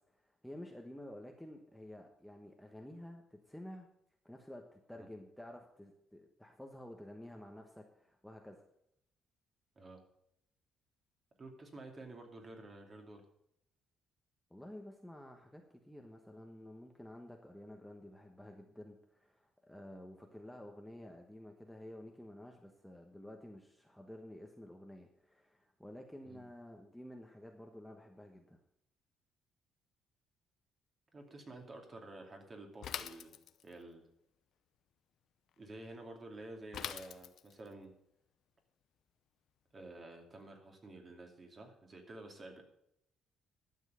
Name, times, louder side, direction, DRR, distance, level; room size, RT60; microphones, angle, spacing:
voice 1, 0.1-3.9 4.2-8.6 14.5-28.6, left 1 dB, ahead, 2 dB, 1.2 m, -51 dB
voice 2, 11.4-13.2 26.2-26.5 31.1-33.4 33.6-34.1 35.6-37.9 39.7-42.7, right 2 dB, 30° right, 3 dB, 2.6 m, -51 dB
Bicycle / Mechanisms, 32.8-33.8 36.7-37.7, left 10 dB, 65° left, 0.7 m, -43 dB
12.0 x 7.2 x 6.9 m, 0.75 s
cardioid pair, 125°, 0 cm